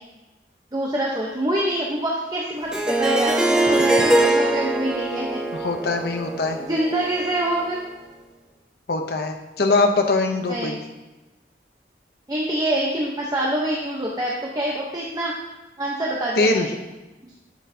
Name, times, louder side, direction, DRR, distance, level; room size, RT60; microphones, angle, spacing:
voice 1, 0.7-5.4 6.6-7.8 10.5-10.8 12.3-15.3 15.8-16.7 17.2-17.3, right 1 dB, 20° right, -3 dB, 0.8 m, -25 dB
Harp, 2.7-7.7, right 2 dB, 5° right, 0.4 m, -22 dB
voice 2, 5.5-6.6 8.9-10.8 16.4-16.7, left 3 dB, 55° left, 4 dB, 0.7 m, -22 dB
11.5 x 6.5 x 2.7 m, 1.1 s
head